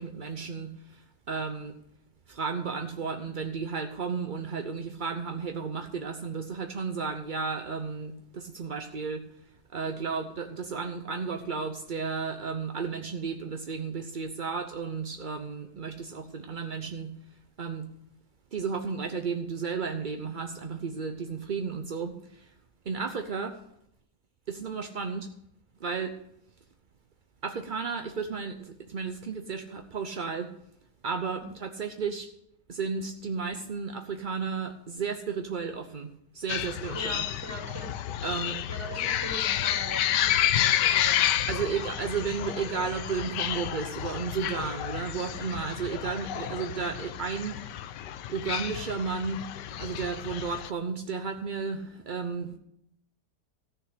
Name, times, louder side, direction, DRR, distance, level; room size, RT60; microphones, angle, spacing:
voice 1, 0.0-1.8 2.3-9.2 9.7-17.1 17.6-17.9 18.5-22.5 22.8-23.6 24.5-25.3 25.8-26.2 27.4-30.5 31.0-32.3 32.7-37.3 38.2-38.6 41.5-47.6 48.3-52.6, right 5 dB, 50° right, 6 dB, 0.5 m, -33 dB
sound 1, 36.5-50.7, left 11 dB, 80° left, 1.3 m, -30 dB
voice 2, 36.9-37.9 38.7-41.6, right 1 dB, 10° right, 0 dB, 2.6 m, -41 dB
14.5 x 6.3 x 8.2 m, 0.77 s
omnidirectional pair, 1.9 m